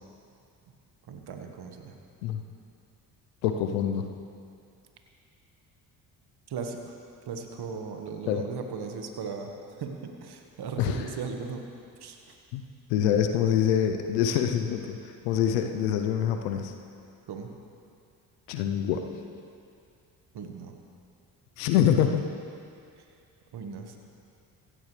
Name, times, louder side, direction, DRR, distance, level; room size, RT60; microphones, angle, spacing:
voice 1, 1.1-2.0 6.5-6.9 7.3-11.7 12.0-12.4 17.3-17.5 20.3-20.8 23.5-24.0, right 5 dB, 55° right, 4 dB, 1.7 m, -37 dB
voice 2, 3.4-4.1 8.3-8.4 10.8-11.0 12.5-12.6 12.9-16.7 18.5-19.0 21.6-22.2, left 9 dB, 80° left, 5 dB, 0.9 m, -25 dB
16.5 x 14.5 x 3.4 m, 2.4 s
hypercardioid pair, 50°, 46 cm